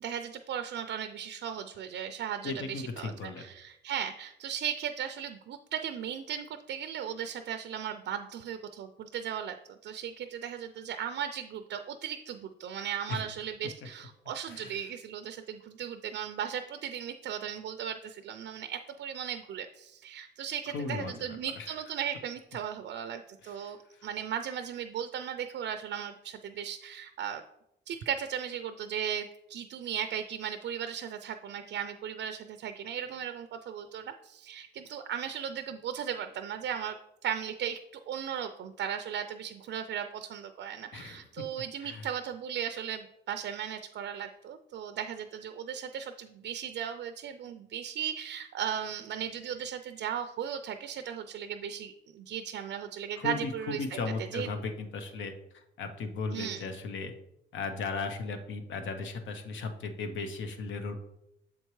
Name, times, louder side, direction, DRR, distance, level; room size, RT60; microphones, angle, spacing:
voice 1, 0.0-9.5 9.8-27.4 27.9-37.0 37.2-37.8 38.1-54.0 54.3-54.5 56.3-56.6, right 9 dB, 65° right, 8 dB, 0.4 m, -37 dB
voice 2, 2.4-3.4 13.1-13.2 14.5-14.8 20.7-21.7 23.4-23.7 40.9-41.2 41.8-42.1 47.4-47.5 53.2-57.1 57.5-61.0, left 4 dB, 75° left, 7 dB, 0.9 m, -36 dB
7.2 x 4.4 x 3.1 m, 0.83 s
cardioid pair, 90°, 20 cm